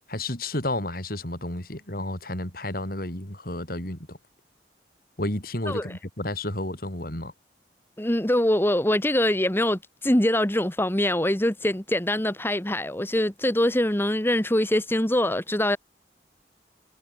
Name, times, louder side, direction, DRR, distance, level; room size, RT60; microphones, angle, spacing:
voice 1, 0.1-4.2 5.2-7.3, left 1 dB, 55° left, 6.0 m, -31 dB
voice 2, 8.0-15.8, left 1 dB, 15° left, 1.7 m, -23 dB
head